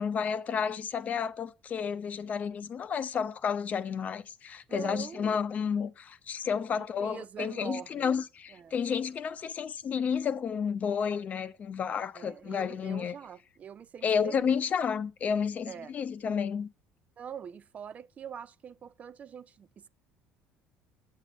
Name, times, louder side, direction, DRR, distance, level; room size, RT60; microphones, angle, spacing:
voice 1, 0.0-13.2 14.0-16.7, left 7 dB, 40° left, 0.6 m, -31 dB
voice 2, 4.7-5.4 6.8-8.2 8.5-8.8 12.1-14.6 15.7-15.9 17.2-19.9, right 8 dB, 40° right, 0.3 m, -44 dB
8.0 x 7.5 x 4.0 m
supercardioid pair, 85°, 4 cm